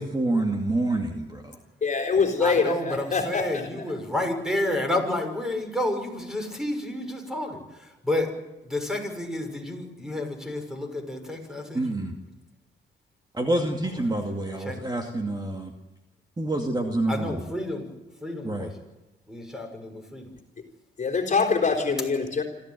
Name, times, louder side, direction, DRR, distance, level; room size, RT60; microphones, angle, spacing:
voice 1, 0.0-1.6 11.7-12.1 13.3-15.7 16.4-17.4 18.4-18.7, right 1 dB, 20° right, 3 dB, 2.3 m, -27 dB
voice 2, 1.8-3.7 21.0-22.4, left 5 dB, 40° left, 2 dB, 3.8 m, -24 dB
voice 3, 2.4-8.3 8.6-12.0 14.6-14.8 17.1-17.9 18.2-18.8 19.3-20.3, left 1 dB, 5° right, 4 dB, 6.3 m, -30 dB
26.5 x 14.0 x 9.3 m, 1.0 s
cardioid pair, 90°, 20 cm